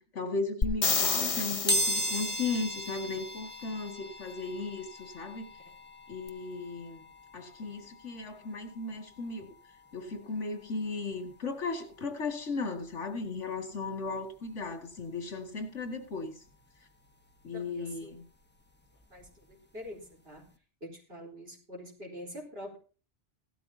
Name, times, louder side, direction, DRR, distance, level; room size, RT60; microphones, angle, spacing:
voice 1, 0.1-5.5 6.1-7.0 7.3-9.5 9.9-16.4 17.4-18.2, left 3 dB, 85° left, 2.6 m, -36 dB
sound 1, 0.6-2.5 6.3-6.4, left 4 dB, 35° left, 0.9 m, -29 dB
sound 2, 1.7-12.3 12.8-12.9 14.1-14.2 14.4-16.5 16.9-19.5 19.9-20.1 20.4-20.5, equal, 10° left, 1.2 m, -38 dB
voice 2, 17.5-18.1 19.1-20.4 20.8-22.8, equal, 55° right, 4.4 m, -45 dB
17.0 x 13.0 x 2.8 m
omnidirectional pair, 1.2 m